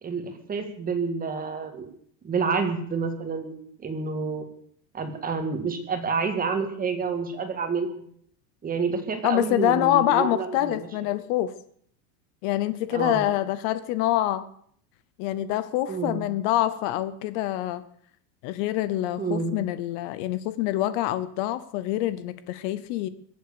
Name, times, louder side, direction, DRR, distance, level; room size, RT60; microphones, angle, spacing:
voice 1, 0.0-1.9 2.2-4.4 4.9-8.0 8.6-10.9 12.9-13.2 15.9-16.2 19.2-19.5, right 5 dB, 20° right, 6 dB, 2.0 m, -29 dB
voice 2, 9.2-11.5 12.4-14.5 15.2-17.8 18.4-23.1, left 14 dB, 50° left, 15 dB, 0.8 m, -25 dB
23.0 x 7.9 x 6.8 m, 0.65 s
supercardioid pair, 150°, 48 cm